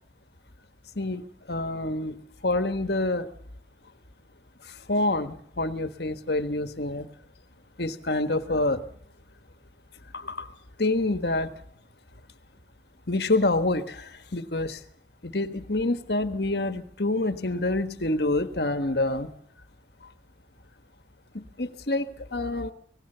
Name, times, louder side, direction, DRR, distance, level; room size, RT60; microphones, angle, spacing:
voice 1, 1.5-2.2 2.4-3.3 4.9-7.1 7.8-8.8 10.1-10.5 10.8-11.5 13.1-14.8 15.2-19.3 21.3-22.7, left 2 dB, 60° left, 10 dB, 1.5 m, -27 dB
26.0 x 18.5 x 6.8 m, 0.63 s
head